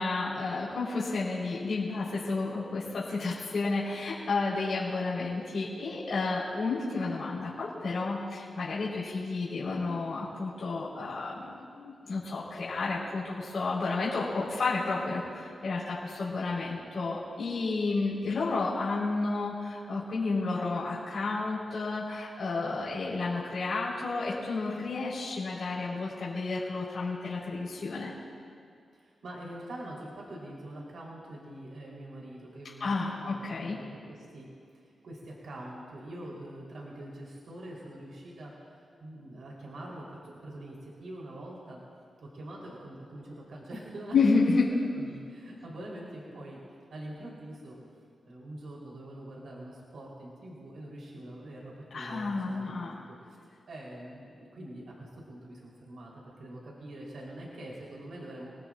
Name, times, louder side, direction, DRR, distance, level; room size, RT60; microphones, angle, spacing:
voice 1, 0.0-28.1 32.8-33.8 44.1-44.7 51.9-53.0, left 3 dB, 65° left, -7 dB, 4.1 m, -31 dB
voice 2, 28.9-34.5 34.7-41.8 42.2-44.1 44.9-46.6 46.9-47.8 48.2-53.4 53.7-58.5, right 1 dB, 75° right, -4 dB, 3.7 m, -44 dB
29.0 x 20.0 x 2.5 m, 2.3 s
cardioid pair, 90°, 0 cm